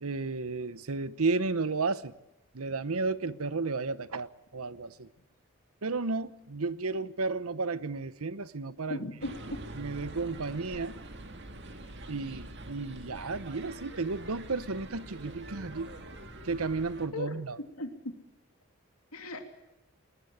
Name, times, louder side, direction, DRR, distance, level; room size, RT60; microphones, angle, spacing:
voice 1, 0.0-2.1 2.5-5.1 5.8-9.0 9.7-11.0 12.1-15.9 16.4-17.6, right 3 dB, 80° right, 1.0 m, -33 dB
voice 2, 8.9-9.3 17.1-17.3 17.8-18.1 19.1-19.5, left 2 dB, 90° left, 2.8 m, -36 dB
sound 1, 9.2-17.1, right 2 dB, 50° right, 2.1 m, -45 dB
20.5 x 20.0 x 8.6 m
head